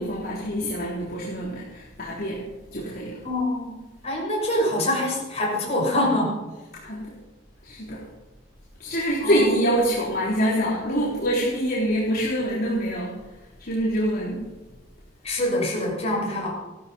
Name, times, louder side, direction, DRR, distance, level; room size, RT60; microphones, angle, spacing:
voice 1, 0.0-3.3 6.7-7.1 7.6-8.0 8.8-13.3 13.6-14.4, equal, 50° left, -7 dB, 3.7 m, -25 dB
voice 2, 3.2-6.5 9.2-9.6 15.2-16.5, left 1 dB, 35° left, -3 dB, 6.3 m, -25 dB
16.5 x 13.0 x 5.6 m, 1.1 s
head